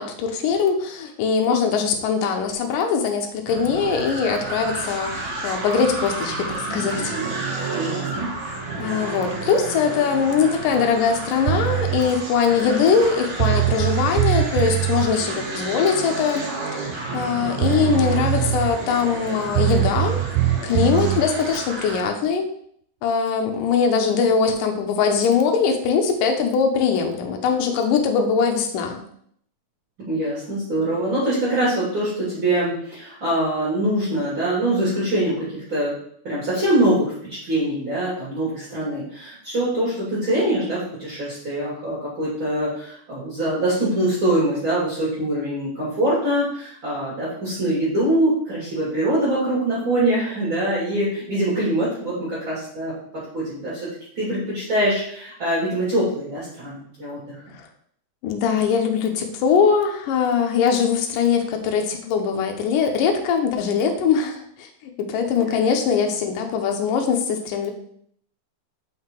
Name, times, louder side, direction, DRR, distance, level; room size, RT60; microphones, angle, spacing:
voice 1, 0.0-7.1 8.8-16.4 16.8-20.2 20.6-22.5 23.0-29.0 57.5-57.7 58.2-64.7 65.1-67.7, left 6 dB, 70° left, 3 dB, 2.3 m, -21 dB
sound 1, 3.5-22.1, right 3 dB, 65° right, 1.2 m, -31 dB
voice 2, 7.7-8.3 30.1-36.0 36.2-52.9 53.3-53.8 54.2-57.4, right 1 dB, 35° right, -9 dB, 2.9 m, -23 dB
sound 2, 11.5-12.0 13.1-13.2 13.4-15.1 17.2-17.3 17.6-18.8 19.6-21.2, right 14 dB, 90° right, 2.5 m, -22 dB
5.7 x 5.7 x 4.5 m, 0.66 s
omnidirectional pair, 4.4 m